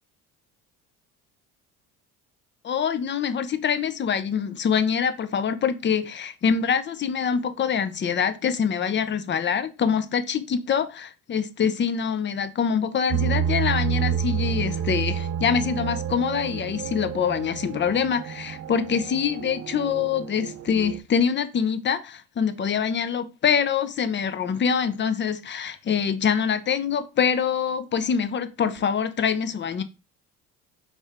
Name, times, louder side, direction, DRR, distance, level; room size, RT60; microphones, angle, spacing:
voice 1, 2.6-29.8, left 7 dB, 30° left, 0.6 m, -25 dB
sound 1, 13.1-21.0, right 8 dB, 45° right, 0.6 m, -29 dB
4.3 x 3.2 x 3.4 m
supercardioid pair, 70°, 37 cm